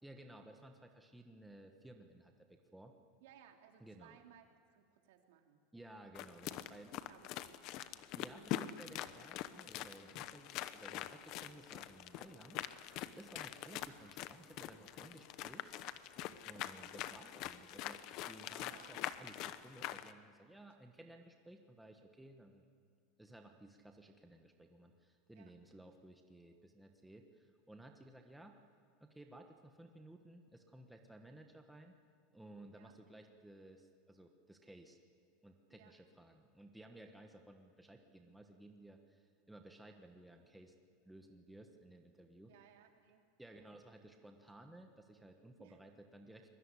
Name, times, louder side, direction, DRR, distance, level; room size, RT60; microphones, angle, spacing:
voice 1, 0.0-3.0 3.8-4.2 5.7-6.9 7.9-15.7 16.4-22.6 23.2-28.6 29.0-31.9 32.3-35.0 35.4-40.7 41.0-42.5 43.4-46.5, right 1 dB, 5° right, 3 dB, 1.2 m, -57 dB
voice 2, 3.2-5.6 6.7-7.8 13.6-13.8 16.6-16.9 18.6-19.1 25.3-25.5 32.7-33.0 35.7-35.9 42.5-43.3 45.6-45.8, right 9 dB, 70° right, 4 dB, 3.2 m, -63 dB
sound 1, 6.2-20.1, left 13 dB, 40° left, 0.9 m, -44 dB
25.0 x 21.0 x 9.9 m, 2.2 s
supercardioid pair, 175°, 0 cm